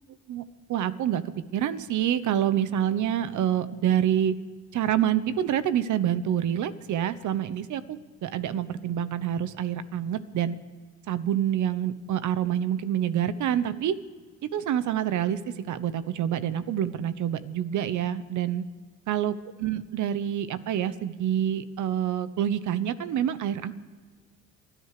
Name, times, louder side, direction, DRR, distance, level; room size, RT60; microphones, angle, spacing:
voice 1, 0.3-4.4 4.7-10.6 11.1-14.0 14.5-18.6 19.1-23.7, right 10 dB, 75° right, 14 dB, 1.1 m, -27 dB
28.0 x 10.0 x 5.0 m, 1.4 s
cardioid pair, 90°, 30 cm